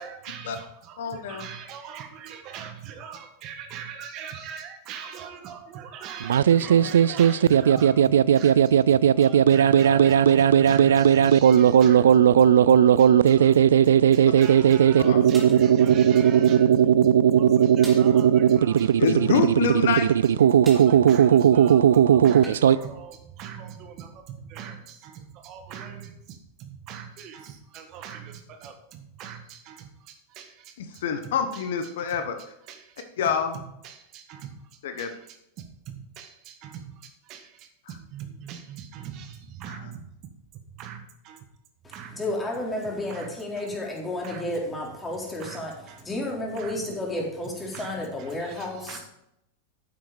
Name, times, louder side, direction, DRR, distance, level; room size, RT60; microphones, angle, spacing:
voice 1, 0.0-13.7 14.1-19.7 19.9-20.0 20.4-33.1 33.8-40.1 40.5-41.4 41.9-42.3 43.1-43.7 44.2-44.6 45.4-46.1 46.5-46.9 47.7-49.0, right 8 dB, 45° right, 6 dB, 1.5 m, -42 dB
voice 2, 1.0-1.5 6.7-6.9 9.8-10.1 15.1-15.2 19.0-20.5 30.8-32.4 33.2-33.6 34.8-35.1 39.7-39.8, left 7 dB, 70° left, 7 dB, 1.2 m, -27 dB
sound 1, 6.2-22.8, right 9 dB, 80° right, 0.3 m, -17 dB
sound 2, 15.3-15.7 17.8-18.1 20.7-21.0 22.4-22.7, right 2 dB, 15° right, 2.6 m, -41 dB
voice 3, 41.8-45.7 46.0-49.0, left 1 dB, 15° left, -2 dB, 3.9 m, -31 dB
9.3 x 7.7 x 5.1 m, 0.82 s
hypercardioid pair, 100°, 0 cm